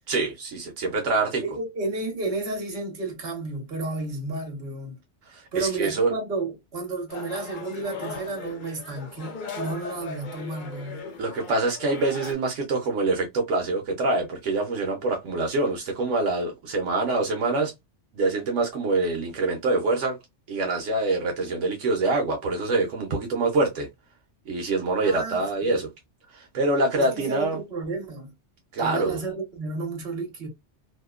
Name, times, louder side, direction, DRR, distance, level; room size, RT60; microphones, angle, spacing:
voice 1, 0.1-1.4 5.3-6.1 11.2-17.7 18.1-20.2 20.5-23.9 24.5-25.9 26.3-27.6 28.7-29.2, right 3 dB, 85° right, 1.0 m, -25 dB
voice 2, 1.4-5.0 5.5-11.0 25.0-25.8 27.0-28.3 28.8-30.5, right 3 dB, 60° right, 1.2 m, -32 dB
sound 1, 7.1-12.3, left 5 dB, 55° left, 0.6 m, -38 dB
2.7 x 2.1 x 2.2 m
omnidirectional pair, 1.2 m